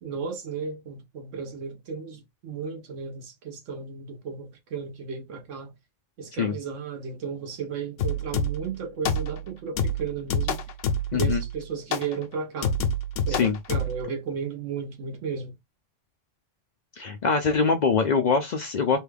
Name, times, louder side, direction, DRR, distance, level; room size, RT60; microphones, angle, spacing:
voice 1, 0.0-5.7 6.2-10.6 11.1-12.8 13.3-15.5, right 5 dB, 90° right, 1.2 m, -34 dB
sound 1, 8.0-8.7 9.1-9.5 9.8-11.6 11.9-12.1 12.6-14.0, left 2 dB, 90° left, 1.0 m, -27 dB
voice 2, 11.1-11.4 13.4-13.6 17.0-19.0, left 5 dB, 65° left, 0.4 m, -23 dB
3.2 x 2.2 x 3.2 m
omnidirectional pair, 1.2 m